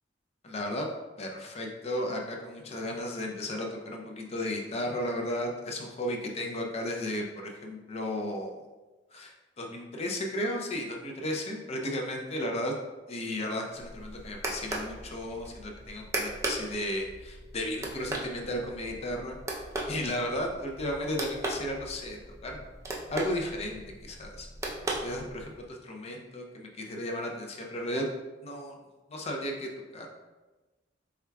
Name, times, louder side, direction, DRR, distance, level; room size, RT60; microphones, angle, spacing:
voice 1, 0.4-0.9 1.2-8.6 9.1-12.7 13.1-22.6 23.1-24.5 25.0-28.1 28.4-28.8 29.1-30.1, left 1 dB, 35° left, 1 dB, 0.5 m, -34 dB
sound 1, 13.7-25.7, right 1 dB, 15° right, 0.5 m, -38 dB
4.5 x 3.5 x 2.2 m, 1.2 s
head